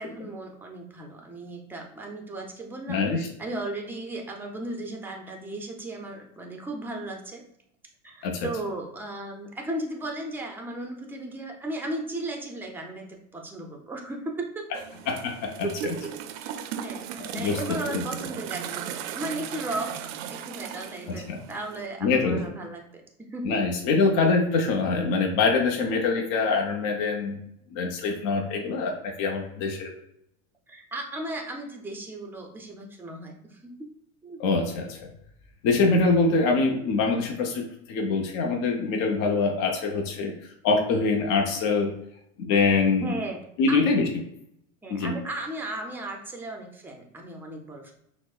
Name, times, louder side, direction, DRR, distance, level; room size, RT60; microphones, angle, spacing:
voice 1, 0.0-7.4 8.0-14.7 15.6-16.1 16.4-16.5 16.8-17.1 17.3-19.9 20.3-23.6 30.7-33.7 34.2-34.4 43.0-43.4 43.7-43.8 44.8-47.9, right 2 dB, 5° right, 2 dB, 0.4 m, -35 dB
voice 2, 2.9-3.3 8.2-8.5 15.1-15.9 17.3-18.0 21.1-21.4 22.0-22.4 23.4-27.4 27.7-29.9 34.4-35.0 35.6-40.3 40.6-41.9 42.4-43.1 43.6-44.1 44.9-45.1, left 4 dB, 55° left, 1 dB, 0.8 m, -24 dB
sound 1, 14.7-21.9, right 9 dB, 65° right, 0.5 m, -37 dB
6.0 x 2.0 x 2.3 m, 0.76 s
supercardioid pair, 120°, 41 cm